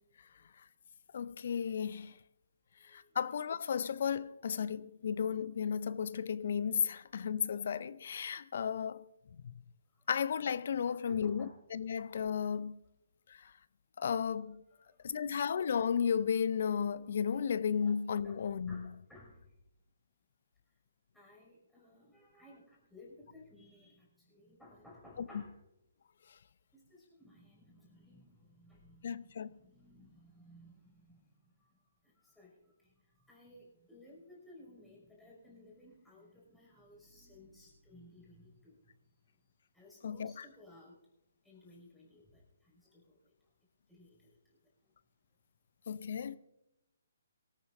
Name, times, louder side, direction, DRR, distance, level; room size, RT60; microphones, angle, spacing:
voice 1, 1.1-2.2 2.8-9.1 9.4-9.5 10.1-12.8 13.3-13.5 14.0-14.6 15.0-18.9 25.2-25.3 29.0-29.5 40.0-40.5 45.9-46.4, left 7 dB, 55° left, 0.6 m, -34 dB
voice 2, 2.8-3.2 10.9-11.5 14.8-15.1 17.8-18.0 18.2-18.4 18.7-19.5 21.1-25.5 26.7-31.7 32.0-38.8 39.4-39.5 39.7-41.0 41.4-43.2 43.9-44.6, left 1 dB, 5° left, 5.9 m, -58 dB
23.5 x 13.5 x 2.6 m
figure-of-eight pair, 135°, 0 cm